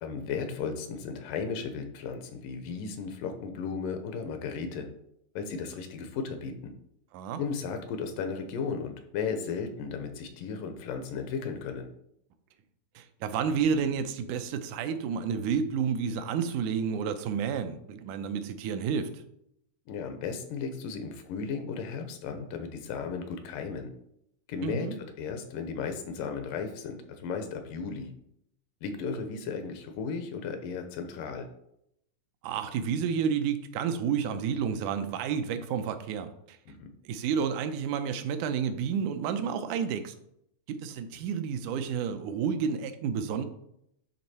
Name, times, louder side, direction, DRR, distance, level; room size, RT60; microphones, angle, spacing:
voice 1, 0.0-4.9 5.4-6.7 7.4-11.9 19.9-23.9 24.5-24.9 25.2-28.1 28.8-31.5 36.7-36.9, left 5 dB, 85° left, 6 dB, 2.4 m, -35 dB
voice 2, 13.0-19.1 24.6-25.0 32.4-36.6 37.1-40.1 40.7-43.5, right 7 dB, 75° right, 8 dB, 2.0 m, -30 dB
10.5 x 3.5 x 4.2 m, 0.76 s
omnidirectional pair, 3.8 m